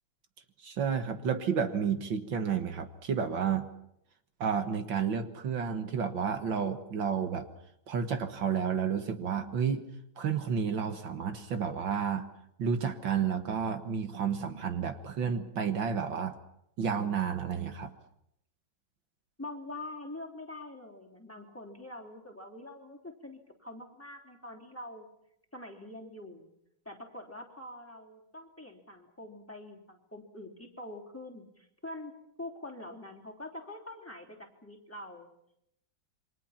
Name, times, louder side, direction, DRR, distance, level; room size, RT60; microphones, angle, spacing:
voice 1, 0.6-3.7 4.4-7.5 7.9-9.8 10.2-12.3 12.6-16.4 16.8-17.9, right 7 dB, 70° right, 7 dB, 2.1 m, -31 dB
voice 2, 19.4-25.1 25.5-26.5 26.8-32.1 32.4-35.3, left 1 dB, 5° left, 0 dB, 3.4 m, -45 dB
28.5 x 24.5 x 5.9 m, 0.78 s
omnidirectional pair, 2.2 m